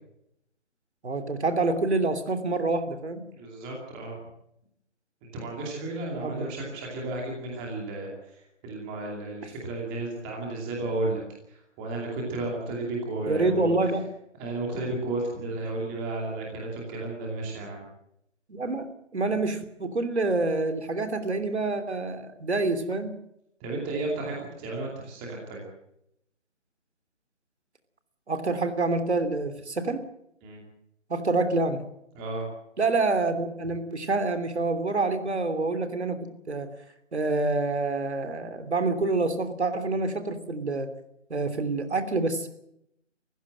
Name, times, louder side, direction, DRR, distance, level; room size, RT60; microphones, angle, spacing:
voice 1, 1.0-3.3 6.2-6.5 13.3-14.1 18.5-23.2 28.3-30.1 31.1-31.8 32.8-36.8 37.1-40.9 41.3-42.5, right 3 dB, 65° right, 9 dB, 3.1 m, -27 dB
voice 2, 3.3-4.2 5.3-11.2 11.5-13.7 14.4-17.8 23.6-25.6 30.4-30.6 32.1-32.5, right 2 dB, 10° right, -1 dB, 2.6 m, -33 dB
25.5 x 15.5 x 7.7 m, 0.78 s
figure-of-eight pair, 170°, 36 cm